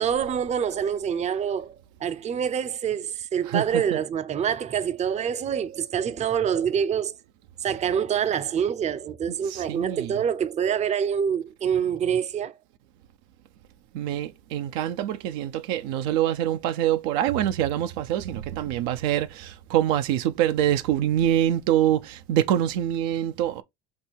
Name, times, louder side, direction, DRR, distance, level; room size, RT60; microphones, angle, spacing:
voice 1, 0.0-7.1 7.6-12.5, right 8 dB, 35° right, 0.5 m, -26 dB
voice 2, 3.4-4.0 9.3-10.1 13.9-23.6, right 11 dB, 80° right, 0.5 m, -25 dB
5.3 x 2.2 x 4.4 m
supercardioid pair, 90°, 21 cm